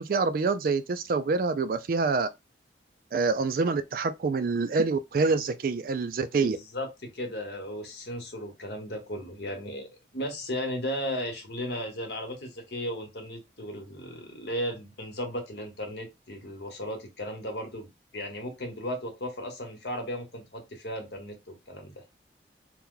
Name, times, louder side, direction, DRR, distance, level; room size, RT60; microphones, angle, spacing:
voice 1, 0.0-2.3 3.1-6.6, right 4 dB, 50° right, 0.3 m, -26 dB
voice 2, 6.4-6.9 7.1-9.9 10.1-22.0, equal, 70° left, 1.1 m, -35 dB
2.9 x 2.2 x 3.7 m
head